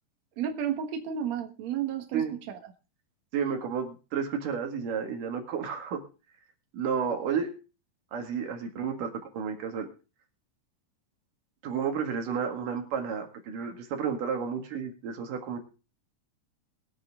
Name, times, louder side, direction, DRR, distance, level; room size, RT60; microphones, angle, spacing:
voice 1, 0.4-2.7, right 9 dB, 60° right, 5 dB, 2.4 m, -32 dB
voice 2, 3.3-6.0 6.7-7.5 8.1-9.9 11.6-15.6, right 6 dB, 80° right, 3 dB, 3.6 m, -31 dB
22.5 x 7.7 x 3.6 m, 0.34 s
omnidirectional pair, 3.8 m